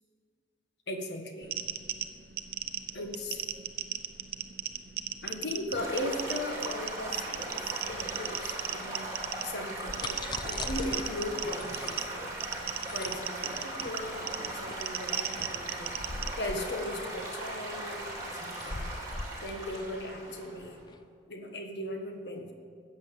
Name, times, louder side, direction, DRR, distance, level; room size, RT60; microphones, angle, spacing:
voice 1, 0.9-1.6 2.9-3.4 5.2-9.1 9.4-12.3 12.9-15.9 16.4-18.9 19.4-20.8 21.3-22.5, left 1 dB, 70° left, 4 dB, 1.6 m, -38 dB
sound 1, 1.4-16.3, right 10 dB, 55° right, 0.6 m, -37 dB
Stream / Gurgling / Trickle dribble, 5.7-20.8, right 1 dB, 20° right, 2.8 m, -39 dB
sound 2, 9.6-21.0, left 2 dB, 25° left, 0.5 m, -42 dB
14.0 x 8.4 x 7.5 m, 2.2 s
head